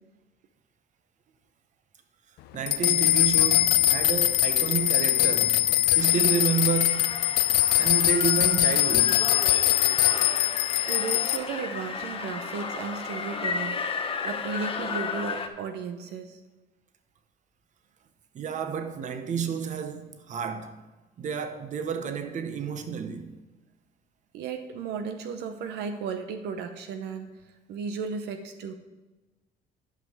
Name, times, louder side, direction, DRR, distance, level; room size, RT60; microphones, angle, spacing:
voice 1, 2.5-5.6 6.0-7.2 7.8-9.2 18.3-20.8 21.2-23.4, right 7 dB, 45° right, 1.0 m, -30 dB
sound 1, 2.7-11.4, left 14 dB, 75° left, 0.5 m, -22 dB
sound 2, 6.0-15.5, left 5 dB, 35° left, 0.9 m, -34 dB
voice 2, 10.9-13.8 14.2-16.4 24.3-27.3 27.7-28.7, right 5 dB, 80° right, 0.8 m, -34 dB
11.0 x 5.5 x 4.9 m
cardioid pair, 110°, 17 cm